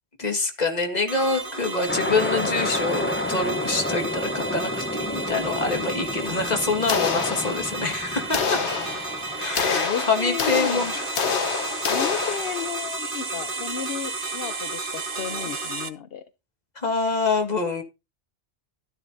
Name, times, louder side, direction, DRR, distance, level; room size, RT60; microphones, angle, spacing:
voice 1, 0.2-8.6 9.4-11.1 11.6-12.4 16.8-17.8, left 3 dB, 40° left, 4 dB, 1.9 m, -26 dB
sound 1, 1.1-15.9, right 3 dB, 55° right, 1.3 m, -32 dB
sound 2, 1.9-9.4, left 1 dB, 10° left, 0.8 m, -31 dB
sound 3, 6.9-7.9 8.3-12.8, left 6 dB, 85° left, 1.3 m, -27 dB
voice 2, 9.6-11.0 11.9-16.2, left 9 dB, 65° left, 11 dB, 0.9 m, -33 dB
12.5 x 10.5 x 2.7 m, 0.27 s
omnidirectional pair, 1.1 m